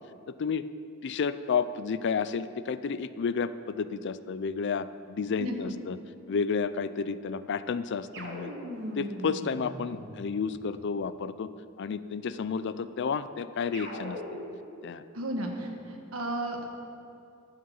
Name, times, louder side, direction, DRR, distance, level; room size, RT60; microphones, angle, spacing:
voice 1, 1.0-6.0 6.3-8.5 9.0-11.5 11.8-14.2 14.8-15.0, left 5 dB, 55° left, 14 dB, 0.4 m, -31 dB
sound 1, 8.1-10.6 13.7-14.8, equal, 55° right, 1.7 m, -40 dB
voice 2, 15.1-16.6, right 1 dB, 85° right, 2 dB, 1.3 m, -33 dB
12.5 x 6.6 x 7.1 m, 2.6 s
head